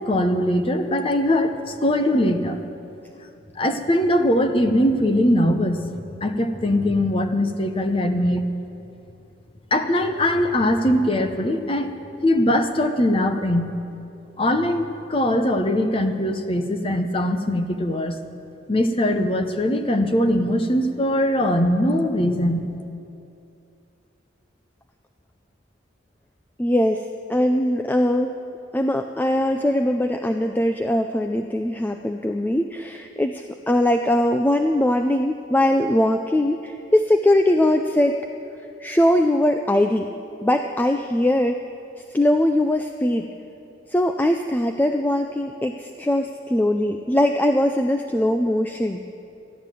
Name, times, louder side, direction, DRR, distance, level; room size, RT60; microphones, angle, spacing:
voice 1, 0.0-2.6 3.5-5.9 6.2-8.4 9.7-11.9 12.2-13.7 14.4-18.2 18.7-22.7, left 1 dB, 30° left, 6 dB, 0.8 m, -21 dB
voice 2, 26.6-28.4 28.7-38.2 38.8-40.1 40.4-41.6 42.1-43.3 43.9-49.0, left 1 dB, 10° left, 5 dB, 0.3 m, -21 dB
14.0 x 11.0 x 7.5 m, 2.7 s
head